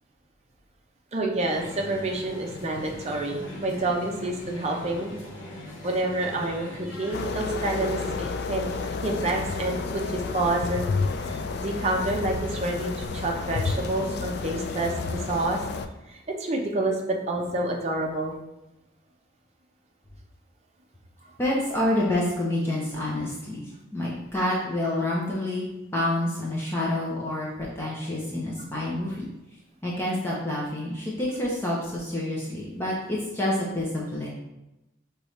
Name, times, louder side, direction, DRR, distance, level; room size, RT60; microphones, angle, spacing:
voice 1, 1.1-5.1 5.8-15.8 16.1-18.3, right 2 dB, 35° right, 0 dB, 0.7 m, -28 dB
sound 1, 1.5-15.5, left 1 dB, 85° left, 0.9 m, -41 dB
sound 2, 7.1-15.9, left 4 dB, 55° left, 0.3 m, -31 dB
voice 2, 21.4-23.7 23.9-25.6 25.9-29.3 29.8-34.3, left 1 dB, 15° left, -5 dB, 0.7 m, -28 dB
5.3 x 3.1 x 3.2 m, 0.97 s
head